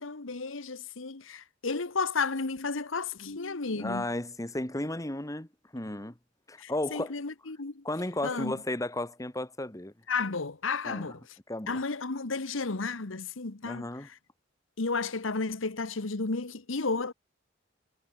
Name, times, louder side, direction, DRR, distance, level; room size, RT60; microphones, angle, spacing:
voice 1, 0.0-4.1 6.6-7.8 8.2-8.5 10.1-11.2 11.7-14.2 14.8-17.1, left 4 dB, 90° left, 1.3 m, -33 dB
voice 2, 3.7-6.1 6.5-7.2 7.8-9.9 10.9-11.2 11.5-11.8 13.6-14.1, left 1 dB, 15° left, 1.8 m, -34 dB
head